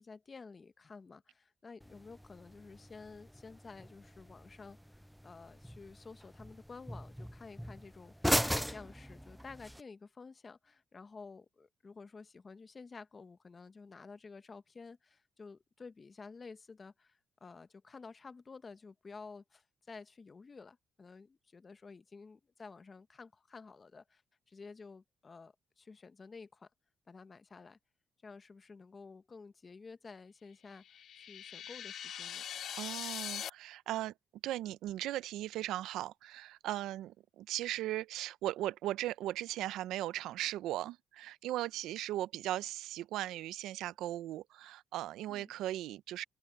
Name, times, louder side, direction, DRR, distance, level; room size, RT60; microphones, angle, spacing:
voice 1, 0.0-24.2 24.5-26.7 27.1-27.8 28.2-32.4 45.3-45.5, left 4 dB, 35° left, 1.0 m, -52 dB
sound 1, 1.8-9.8, equal, ahead, 0.4 m, -39 dB
sound 2, 30.7-33.5, left 9 dB, 65° left, 0.4 m, -42 dB
voice 2, 32.7-34.1 34.4-46.2, right 14 dB, 90° right, 0.5 m, -38 dB
open air
cardioid pair, 90°, 0 cm